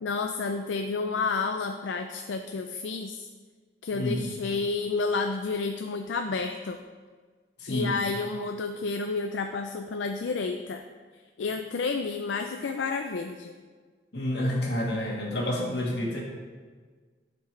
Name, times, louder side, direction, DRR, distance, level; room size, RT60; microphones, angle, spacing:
voice 1, 0.0-3.3 3.8-6.8 7.7-10.8 11.4-13.5, left 4 dB, 85° left, 6 dB, 0.4 m, -30 dB
voice 2, 3.9-4.2 7.6-7.9 14.1-16.2, left 1 dB, 65° left, -2 dB, 1.6 m, -29 dB
10.5 x 5.9 x 3.2 m, 1.5 s
head